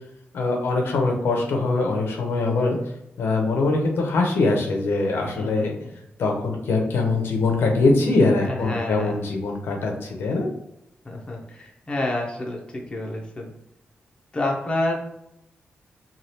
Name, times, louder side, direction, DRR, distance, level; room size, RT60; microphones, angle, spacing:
voice 1, 0.3-2.8 3.2-5.7 6.2-10.5, left 3 dB, 80° left, 2 dB, 0.6 m, -22 dB
voice 2, 5.4-5.9 8.5-9.2 11.0-13.5 14.3-14.9, left 1 dB, 25° left, -1 dB, 0.6 m, -29 dB
3.2 x 2.3 x 2.7 m, 0.82 s
wide cardioid pair, 135°, 4 cm